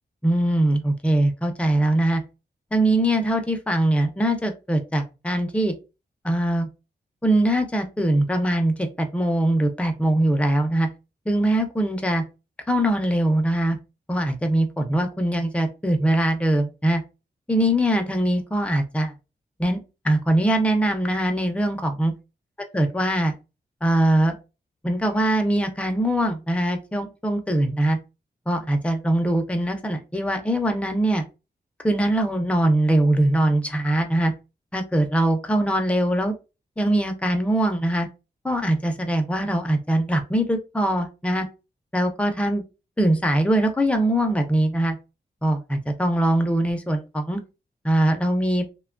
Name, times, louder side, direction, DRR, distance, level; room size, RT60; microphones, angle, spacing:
voice 1, 0.2-2.2 2.7-5.7 6.2-6.7 7.2-10.9 11.3-12.2 12.7-13.8 14.1-17.0 17.5-19.1 19.6-22.1 22.7-23.3 23.8-24.4 24.8-28.0 28.5-31.2 31.8-34.3 34.7-36.3 36.8-38.1 38.4-41.5 41.9-42.6 43.0-45.0 45.4-47.4 47.8-48.7, right 1 dB, 5° left, 5 dB, 0.5 m, -22 dB
3.0 x 2.2 x 2.4 m, 0.28 s
wide cardioid pair, 130°, 17 cm